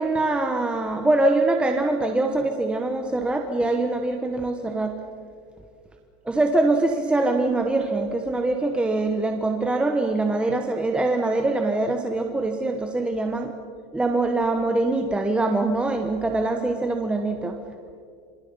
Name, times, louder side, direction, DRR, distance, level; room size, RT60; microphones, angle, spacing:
voice 1, 0.0-4.9 6.3-13.5 13.9-17.6, right 2 dB, 5° right, 4 dB, 1.2 m, -23 dB
26.5 x 26.0 x 5.6 m, 2.2 s
supercardioid pair, 150°, 16 cm